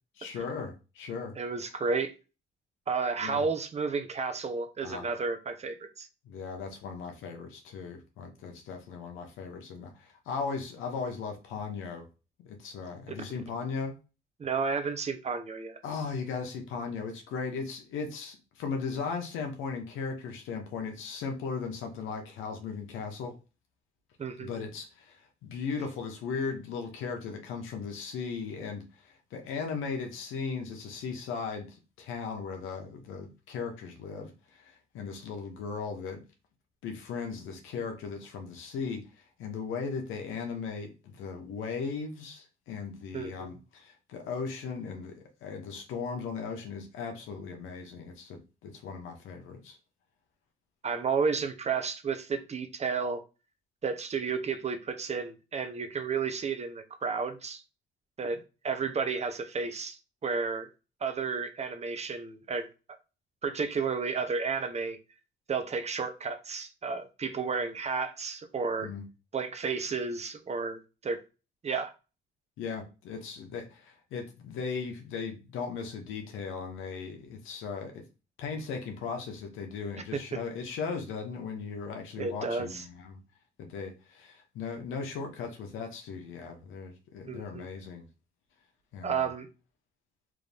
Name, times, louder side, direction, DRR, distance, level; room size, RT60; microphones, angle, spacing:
voice 1, 0.2-1.3 3.2-3.4 4.8-5.1 6.2-12.1 12.4-14.0 15.8-23.4 24.4-36.2 36.8-49.8 68.8-69.0 72.6-78.0 78.4-83.2 83.6-88.1 88.9-89.3, left 5 dB, 90° left, 0.8 m, -37 dB
voice 2, 1.4-2.1 2.9-6.1 14.4-15.8 24.2-24.5 43.1-43.5 50.8-53.2 53.8-57.6 58.2-60.0 60.2-60.7 61.0-62.7 63.4-65.0 65.5-68.9 69.3-71.2 71.6-71.9 80.1-80.2 82.2-82.8 87.3-87.7 89.0-89.5, right 5 dB, 35° right, 0.7 m, -32 dB
3.6 x 2.6 x 3.3 m
cardioid pair, 90°, 20 cm